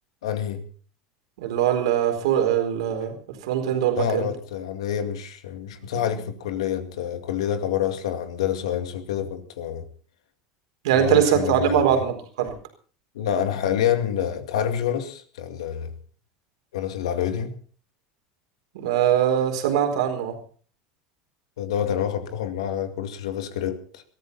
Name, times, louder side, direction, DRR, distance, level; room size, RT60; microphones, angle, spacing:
voice 1, 0.2-0.7 4.0-9.9 10.9-12.0 13.1-15.9 16.7-17.5 21.6-24.0, left 9 dB, 85° left, 2.3 m, -27 dB
voice 2, 1.4-3.2 3.4-4.3 10.8-12.5 18.7-20.4, right 10 dB, 80° right, 4.3 m, -22 dB
21.5 x 14.5 x 4.2 m
hypercardioid pair, 95°, 3 cm